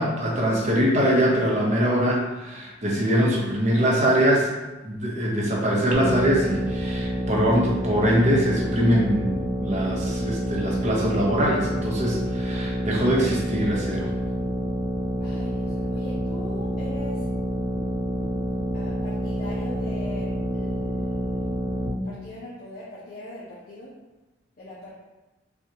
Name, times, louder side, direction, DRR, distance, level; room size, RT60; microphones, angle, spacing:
voice 1, 0.0-4.5 4.8-14.1, equal, 40° right, -3 dB, 1.0 m, -23 dB
sound 1, 5.9-21.9, right 1 dB, 15° left, 1.3 m, -28 dB
voice 2, 15.2-17.2 18.7-21.4 22.0-23.9 24.6-24.9, left 2 dB, 55° left, -8 dB, 0.8 m, -40 dB
5.7 x 2.5 x 2.9 m, 1.1 s
head